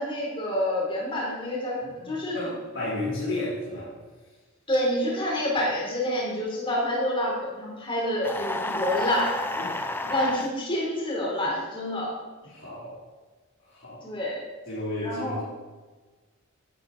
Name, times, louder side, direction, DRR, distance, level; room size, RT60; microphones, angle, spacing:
voice 1, 0.0-2.5 4.7-9.3 10.1-12.2 14.0-14.4 15.0-15.4, left 1 dB, 25° left, -3 dB, 3.7 m, -28 dB
voice 2, 2.0-4.0 9.6-10.1 12.5-13.0 13.7-14.0 14.7-15.4, left 1 dB, 60° left, -9 dB, 4.0 m, -33 dB
sound 1, 8.2-10.5, left 2 dB, 10° left, 0.6 m, -30 dB
12.0 x 11.0 x 4.3 m, 1.3 s
head